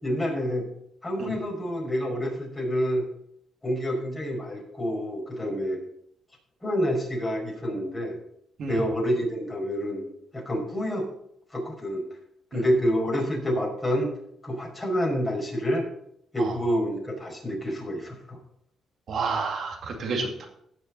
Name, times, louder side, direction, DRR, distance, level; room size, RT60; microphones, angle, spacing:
voice 1, 0.0-0.7 1.0-3.0 3.6-5.8 6.6-8.1 8.7-10.0 10.3-11.0 11.5-12.0 12.5-14.1 14.4-15.8 16.3-18.4, equal, 20° left, 0 dB, 5.2 m, -28 dB
voice 2, 19.1-20.4, right 4 dB, 60° right, 1 dB, 2.3 m, -30 dB
16.5 x 6.4 x 4.1 m, 0.72 s
cardioid pair, 90°, 0 cm